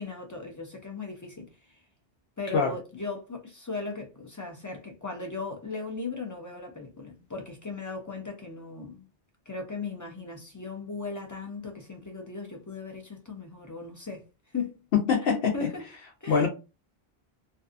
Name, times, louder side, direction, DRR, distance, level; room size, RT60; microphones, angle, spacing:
voice 1, 0.0-1.8 2.4-9.1 9.5-14.2 14.5-14.8 15.3-15.8 16.2-16.5, left 4 dB, 35° left, 0.3 m, -37 dB
voice 2, 14.9-15.5 16.3-16.5, left 6 dB, 75° left, 0.8 m, -23 dB
2.5 x 2.3 x 2.4 m
omnidirectional pair, 1.1 m